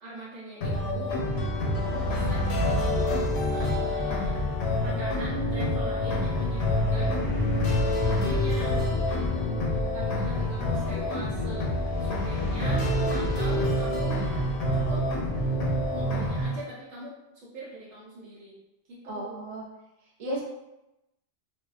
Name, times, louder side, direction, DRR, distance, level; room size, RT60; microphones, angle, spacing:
voice 1, 0.0-1.1 1.8-2.8 3.5-4.4 4.7-7.2 8.0-8.9 9.3-14.2 14.7-15.0 15.9-18.6 18.9-19.4, equal, 80° right, -6 dB, 1.0 m, -41 dB
sound 1, 0.6-16.6, left 1 dB, 90° left, 1.0 m, -29 dB
sound 2, 1.0-16.1, left 1 dB, 25° left, 0.6 m, -41 dB
sound 3, 1.1-16.3, left 1 dB, 65° left, 0.7 m, -31 dB
voice 2, 19.0-19.6 20.2-20.4, right 1 dB, 45° right, -3 dB, 0.5 m, -33 dB
2.6 x 2.1 x 2.3 m, 0.94 s
omnidirectional pair, 1.2 m